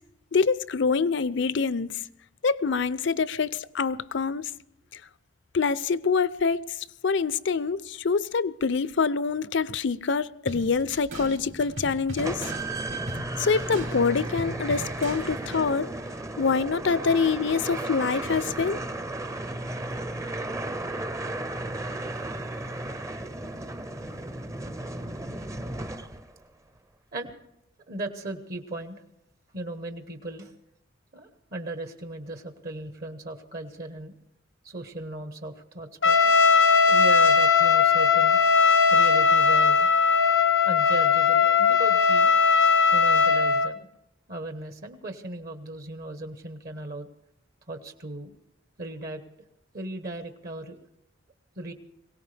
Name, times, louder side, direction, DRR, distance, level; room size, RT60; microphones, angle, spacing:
voice 1, 0.3-2.0 2.4-4.5 5.5-6.7 7.0-12.5 13.4-15.9 16.4-18.8, left 5 dB, 65° left, 0.6 m, -25 dB
sound 1, 10.5-15.7, right 1 dB, 70° right, 3.4 m, -39 dB
sound 2, 12.2-26.4, right 2 dB, 15° right, 0.6 m, -34 dB
voice 2, 27.9-29.0 29.5-30.5 31.1-34.1 34.6-36.4 36.9-38.4 38.9-39.9 40.6-42.3 42.9-43.9 44.3-47.1 47.7-48.3 48.8-49.2 49.7-50.8 51.6-51.7, right 2 dB, 50° right, 1.1 m, -37 dB
Trumpet, 36.0-43.7, left 5 dB, 85° left, 1.0 m, -19 dB
23.0 x 17.5 x 3.4 m
head